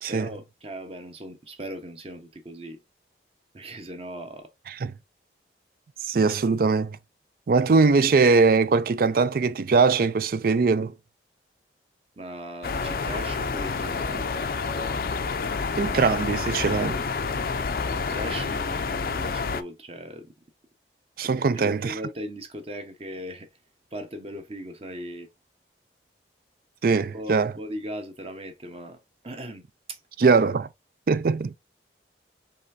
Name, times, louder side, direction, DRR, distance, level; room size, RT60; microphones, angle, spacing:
voice 1, 0.1-2.8 3.5-4.5 12.2-14.3 17.9-20.3 21.2-23.5 23.9-25.3 26.9-29.0 29.2-30.0, equal, 35° right, 1.0 m, -38 dB
voice 2, 6.0-7.0 7.5-10.9 15.8-17.0 21.2-21.9 26.8-27.5 30.2-30.7 31.1-31.6, right 4 dB, 50° right, 0.4 m, -21 dB
sound 1, 12.6-19.6, left 4 dB, 50° left, 0.5 m, -28 dB
5.3 x 3.5 x 2.7 m
head